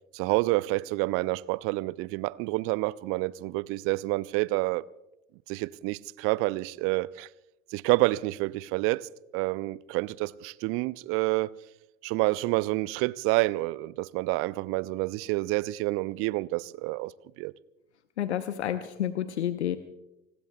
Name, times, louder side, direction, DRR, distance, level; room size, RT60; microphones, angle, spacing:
voice 1, 0.1-4.9 5.5-7.3 7.7-11.5 12.0-17.5, right 21 dB, 40° right, 0.5 m, -28 dB
voice 2, 18.2-19.8, left 10 dB, 75° left, 0.8 m, -30 dB
30.0 x 20.0 x 2.3 m
figure-of-eight pair, 75°, 34 cm